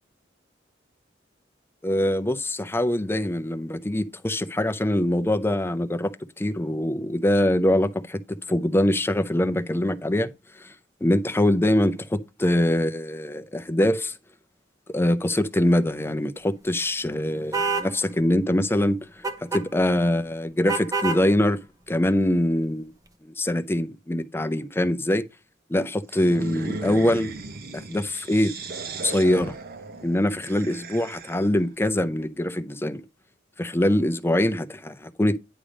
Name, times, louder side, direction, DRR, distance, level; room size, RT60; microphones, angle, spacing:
voice 1, 1.8-6.1 6.4-10.3 10.6-10.7 11.0-14.1 14.9-19.0 19.5-21.6 21.9-22.9 23.2-25.2 25.7-27.3 27.7-28.5 29.0-29.6 30.0-33.0 33.6-35.4, left 1 dB, 15° left, 0.5 m, -23 dB
sound 1, 17.5-17.9 19.2-19.6 20.7-21.2, right 4 dB, 20° right, 0.8 m, -26 dB
sound 2, 26.1-31.6, right 3 dB, 55° right, 0.9 m, -37 dB
10.0 x 3.4 x 5.1 m
head